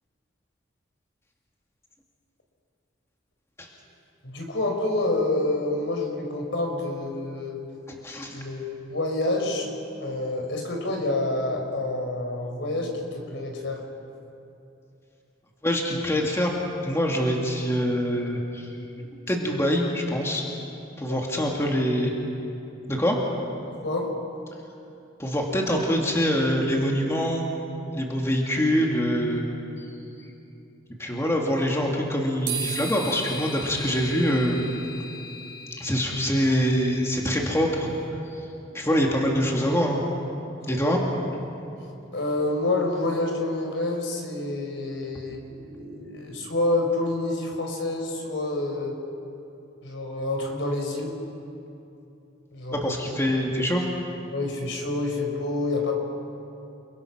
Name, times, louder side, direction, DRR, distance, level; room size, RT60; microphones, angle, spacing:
voice 1, 4.2-7.6 8.3-9.7 10.0-13.8 21.1-21.2 23.8-24.1 40.6-40.8 42.1-49.0 49.8-51.1 52.5-52.9 54.3-55.9, left 2 dB, 70° left, 2 dB, 4.4 m, -28 dB
voice 2, 7.9-8.4 15.6-16.5 16.8-18.7 19.3-20.4 21.0-22.1 22.9-23.2 25.2-27.5 27.9-29.4 29.8-29.9 30.2-30.3 31.0-34.9 35.8-37.9 38.3-38.4 38.7-40.1 40.7-41.0 52.7-53.8, equal, 15° left, -1 dB, 2.2 m, -24 dB
sound 1, 32.5-37.8, right 2 dB, 80° right, 6.5 m, -37 dB
30.0 x 22.0 x 6.0 m, 2.7 s
head